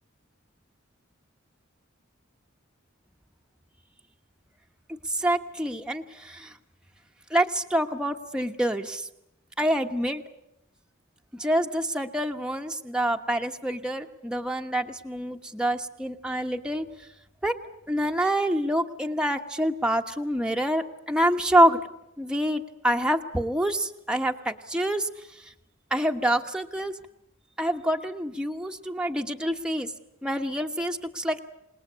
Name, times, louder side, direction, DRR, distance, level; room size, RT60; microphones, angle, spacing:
voice 1, 5.0-6.5 7.3-9.1 9.6-10.2 11.3-16.9 17.4-17.6 17.9-21.8 22.2-25.1 25.4-25.5 25.9-26.9 27.6-29.9 30.2-31.4, right 1 dB, 5° right, 3 dB, 1.2 m, -26 dB
28.0 x 19.5 x 8.5 m, 0.83 s
head